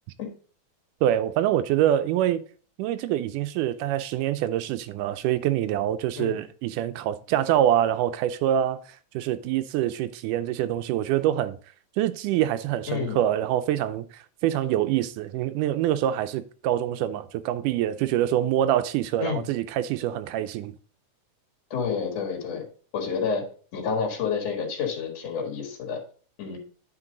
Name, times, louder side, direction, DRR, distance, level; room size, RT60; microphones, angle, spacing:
voice 1, 1.0-2.4 2.8-8.8 9.1-11.6 12.0-20.8, right 11 dB, 85° right, 2.1 m, -25 dB
voice 2, 12.9-13.2 19.2-19.4 21.7-22.6 22.9-23.4 23.7-26.0 26.4-26.6, left 6 dB, 60° left, 2.6 m, -29 dB
9.9 x 4.5 x 3.8 m
omnidirectional pair, 3.6 m